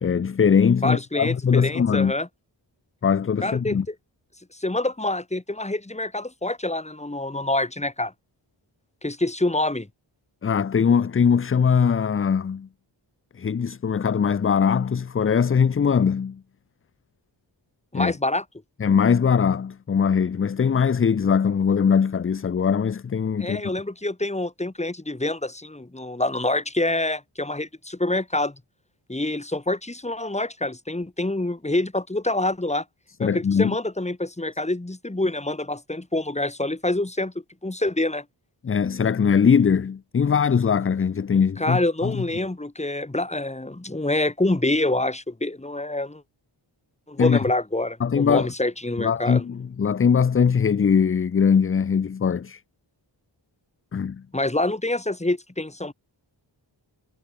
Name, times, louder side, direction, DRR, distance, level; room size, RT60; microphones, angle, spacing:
voice 1, 0.0-2.1 3.0-3.9 10.4-12.7 13.4-16.4 17.9-18.1 18.8-23.6 33.2-33.7 38.6-42.2 47.2-47.4 48.0-48.5 49.0-52.6 53.9-54.2, left 6 dB, 30° left, 0.4 m, -21 dB
voice 2, 0.8-2.3 3.4-3.9 4.5-8.1 9.0-9.9 17.9-18.4 23.4-28.6 29.1-32.8 33.2-37.3 37.6-38.2 41.6-46.2 47.1-49.4 54.3-55.9, left 2 dB, 15° left, 2.0 m, -26 dB
wide cardioid pair, 110°, 46 cm